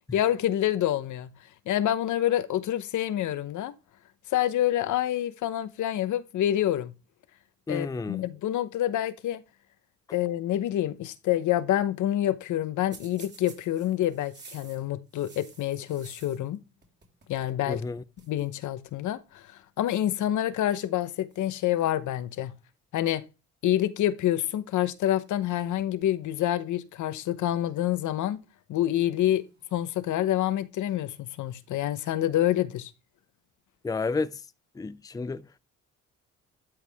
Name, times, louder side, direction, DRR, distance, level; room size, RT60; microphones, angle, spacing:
voice 1, 0.1-1.3 1.7-3.7 4.3-6.9 7.7-9.4 10.1-16.6 17.3-17.8 18.3-19.4 19.8-22.5 22.9-23.2 23.6-28.4 28.7-29.4 29.7-32.9, left 12 dB, 75° left, 1.0 m, -27 dB
voice 2, 7.7-8.2 17.7-18.0 33.8-34.4 34.8-35.4, left 4 dB, 10° left, 0.5 m, -31 dB
sound 1, 12.9-16.6 16.8-17.6 17.8-17.9 18.2-18.5 19.4-19.6 20.4-20.8 21.3-22.3 25.3-25.5 25.8-26.6 27.0-27.1 28.0-28.1 29.3-30.2 31.4-32.0, right 5 dB, 35° right, 3.5 m, -53 dB
12.0 x 4.8 x 3.5 m
cardioid pair, 90°, 30 cm